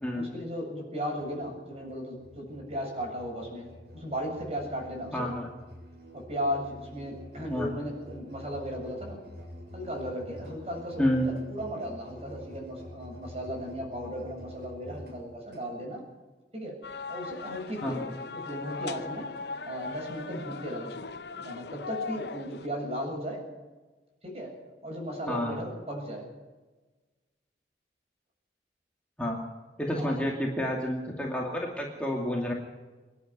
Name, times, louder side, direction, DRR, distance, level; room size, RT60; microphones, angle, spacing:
voice 1, 0.2-5.3 6.1-9.2 9.7-16.0 16.5-16.8 17.1-19.3 19.6-20.9 21.3-23.4 24.2-24.5 24.8-26.3 29.9-30.2, equal, 35° right, 1 dB, 7.6 m, -36 dB
Musical instrument, 1.1-15.7, left 1 dB, 65° right, 7.1 m, -47 dB
voice 2, 5.1-5.5 7.5-7.7 11.0-11.3 17.8-18.0 25.3-25.6 29.2-29.4 29.8-32.5, equal, 5° left, -2 dB, 2.5 m, -29 dB
sound 1, 16.8-22.7, left 4 dB, 70° left, 0.8 m, -39 dB
26.0 x 10.5 x 9.7 m, 1.2 s
head